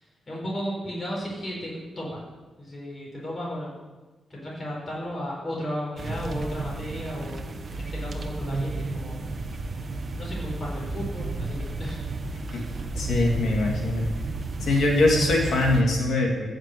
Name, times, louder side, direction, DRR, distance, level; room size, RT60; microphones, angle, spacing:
voice 1, 0.0-2.2 2.6-3.8 4.3-7.4 7.7-9.2 10.2-12.0 12.5-12.8, equal, 25° left, -4 dB, 4.6 m, -34 dB
sound 1, 6.0-15.8, right 2 dB, 35° right, 1.2 m, -32 dB
voice 2, 12.9-14.0 14.6-16.5, left 2 dB, 60° left, 0 dB, 2.6 m, -22 dB
15.0 x 6.6 x 7.9 m, 1.2 s
wide cardioid pair, 155°, 0 cm